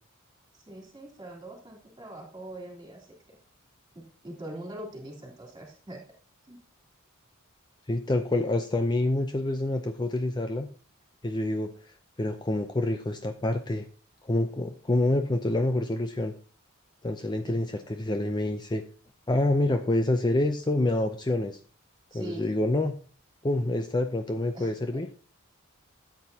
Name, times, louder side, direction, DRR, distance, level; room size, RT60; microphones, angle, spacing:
voice 1, 0.5-3.4 3.9-6.0 6.5-6.6 17.4-17.6 22.1-22.5 24.5-25.0, right 1 dB, 20° right, 0 dB, 3.4 m, -42 dB
voice 2, 7.9-10.7 11.2-13.9 14.2-16.3 17.0-18.8 19.3-21.6 22.1-23.0 23.4-25.1, left 1 dB, 20° left, 7 dB, 0.5 m, -27 dB
13.0 x 8.2 x 2.8 m, 0.39 s
head